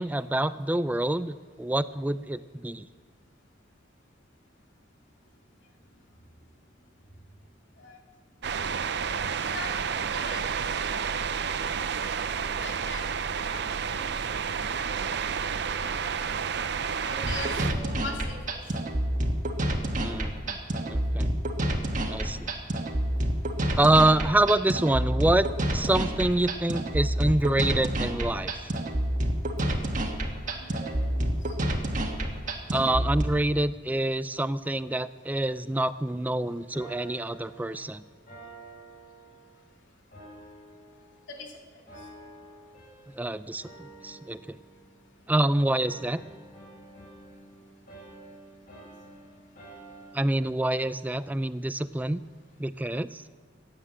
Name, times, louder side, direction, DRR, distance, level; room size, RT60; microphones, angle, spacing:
voice 1, 0.0-2.9 20.0-20.6 20.9-21.3 22.1-22.5 23.8-28.7 32.7-38.0 43.2-44.4 45.3-46.2 50.1-52.2 52.6-53.2, right 1 dB, 10° right, 15 dB, 0.4 m, -26 dB
sound 1, 8.4-17.7, right 6 dB, 65° right, 0.6 m, -30 dB
voice 2, 9.2-11.2 12.6-13.1 13.5-13.6 13.9-14.1 14.7-16.5 17.0-18.8 30.5-31.5 41.3-41.5 48.7-48.9, left 3 dB, 75° left, 0 dB, 2.7 m, -42 dB
sound 2, 17.2-33.2, right 1 dB, 45° right, 1.5 m, -28 dB
sound 3, 36.7-39.7 40.1-41.5 41.9-43.3 43.6-45.3 45.7-50.4, right 2 dB, 50° left, 5.0 m, -49 dB
16.5 x 9.8 x 7.5 m, 1.5 s
head